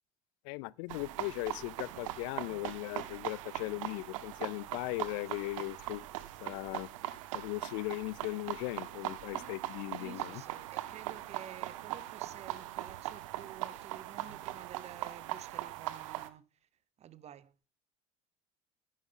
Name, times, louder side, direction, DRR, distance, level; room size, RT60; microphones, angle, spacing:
voice 1, 0.4-6.0 6.4-6.9 7.3-10.4, left 22 dB, 70° left, 0.4 m, -38 dB
sound 1, 0.9-16.3, right 15 dB, 80° right, 0.8 m, -41 dB
voice 2, 10.0-16.5 17.0-17.5, right 10 dB, 40° right, 0.8 m, -51 dB
11.0 x 9.7 x 3.8 m
hypercardioid pair, 75°, 17 cm